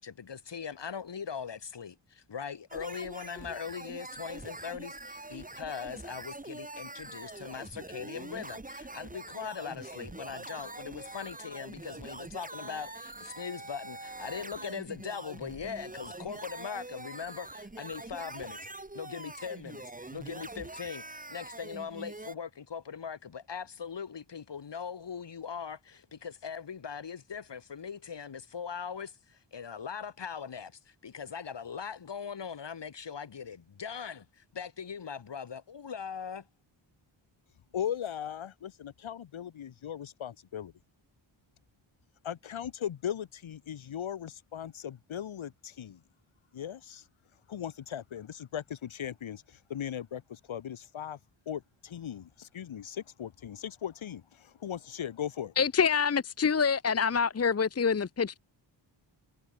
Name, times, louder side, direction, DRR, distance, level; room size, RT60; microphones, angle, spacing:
voice 1, 0.0-18.7 18.9-36.5, left 6 dB, 60° left, 7.8 m, -40 dB
sound 1, 2.7-22.3, right 2 dB, 15° right, 5.8 m, -44 dB
voice 2, 37.7-40.7 42.2-46.0 46.5-47.1 47.5-51.2 51.4-55.5, left 9 dB, 80° left, 1.7 m, -38 dB
voice 3, 55.6-58.4, left 6 dB, 30° left, 0.9 m, -26 dB
wide cardioid pair, 165°, 47 cm